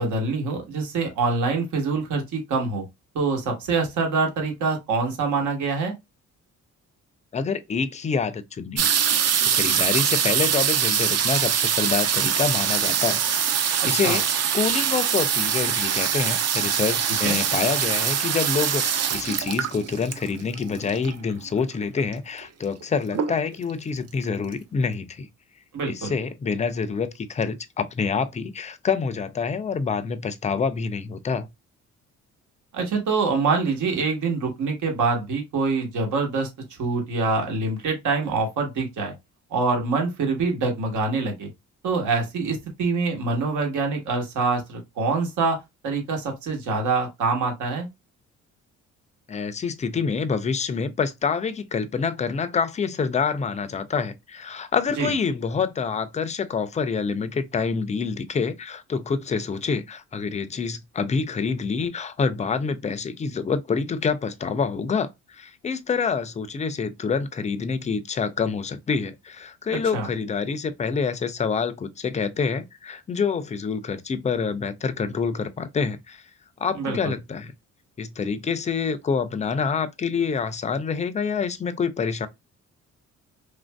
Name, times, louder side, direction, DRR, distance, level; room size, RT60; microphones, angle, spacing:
voice 1, 0.0-2.8 3.1-5.9 13.8-14.2 17.2-17.4 25.7-26.1 32.7-36.5 36.8-39.1 39.5-41.5 41.8-45.6 45.8-47.9 55.0-55.1 69.7-70.1 76.7-77.1, right 4 dB, 80° right, 1.3 m, -25 dB
voice 2, 7.3-8.9 9.4-14.2 14.5-25.3 25.8-31.5 49.3-76.2 76.6-77.5 78.0-82.3, left 5 dB, 25° left, 0.4 m, -27 dB
sound 1, 8.8-21.3 22.1-22.2 22.4-22.8 23.1-23.7 24.2-24.3 24.5-24.6, right 8 dB, 55° right, 0.6 m, -23 dB
3.2 x 2.5 x 2.2 m
cardioid pair, 90°, 30 cm